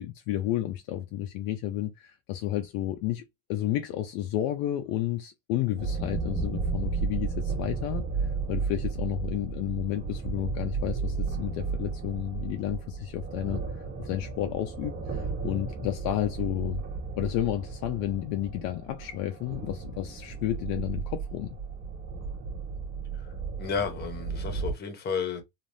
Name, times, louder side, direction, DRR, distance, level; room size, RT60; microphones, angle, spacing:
voice 1, 0.0-3.2 3.5-16.8 17.2-21.6, left 13 dB, 55° left, 0.5 m, -31 dB
sound 1, 5.8-24.7, right 5 dB, 40° right, 1.2 m, -34 dB
voice 2, 23.6-25.4, left 6 dB, 25° left, 0.8 m, -32 dB
3.3 x 2.4 x 2.6 m
cardioid pair, 155°, 41 cm